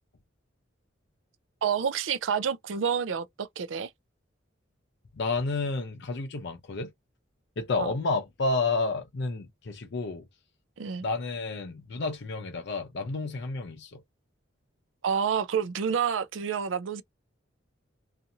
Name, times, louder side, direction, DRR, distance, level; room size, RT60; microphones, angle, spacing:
voice 1, 1.6-3.9 7.8-7.9 10.8-11.1 15.0-17.0, right 7 dB, 80° right, 0.4 m, -28 dB
voice 2, 5.1-6.9 7.6-10.2 11.0-14.0, left 3 dB, 65° left, 0.6 m, -30 dB
2.6 x 2.4 x 2.7 m
head